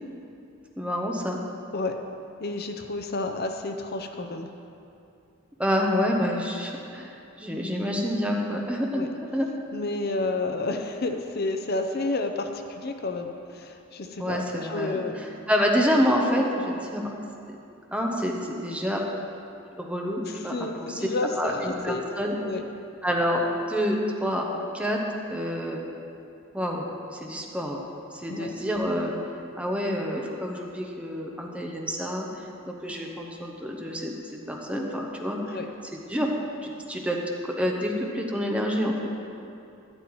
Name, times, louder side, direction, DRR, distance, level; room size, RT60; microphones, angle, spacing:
voice 1, 0.8-1.4 5.6-7.1 7.4-9.5 14.2-17.1 17.9-19.0 19.8-20.5 20.8-21.1 21.3-22.3 23.0-23.4 23.7-25.0 25.3-25.8 26.5-26.9 27.1-27.8 28.1-29.1 29.5-32.3 32.7-35.6 35.9-36.3 36.6-37.2 37.4-39.0, equal, 5° right, 0 dB, 0.8 m, -27 dB
voice 2, 2.4-4.5 8.9-9.1 9.7-15.2 20.3-22.1 22.4-22.6 28.3-28.5 35.4-35.7, left 2 dB, 50° left, 5 dB, 0.7 m, -30 dB
12.5 x 11.0 x 3.1 m, 2.6 s
head